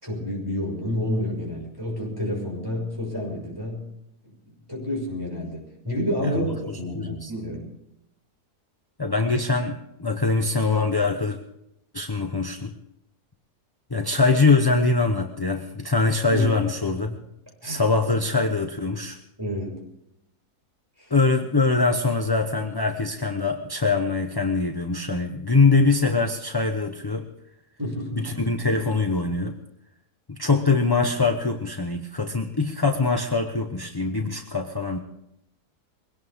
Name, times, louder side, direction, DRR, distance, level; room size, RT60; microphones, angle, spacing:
voice 1, 0.0-3.9 4.2-4.3 4.7-7.7 16.2-16.5 16.9-17.2 17.6-17.9 19.4-19.8 21.0-21.1 27.8-28.4, left 1 dB, 15° right, -1 dB, 6.2 m, -29 dB
voice 2, 6.9-7.3 9.0-11.4 11.9-12.7 13.9-17.1 17.6-19.2 21.1-27.3 28.2-29.6 30.3-35.0, left 3 dB, 20° left, 4 dB, 0.7 m, -23 dB
22.5 x 17.5 x 3.6 m, 0.81 s
omnidirectional pair, 1.7 m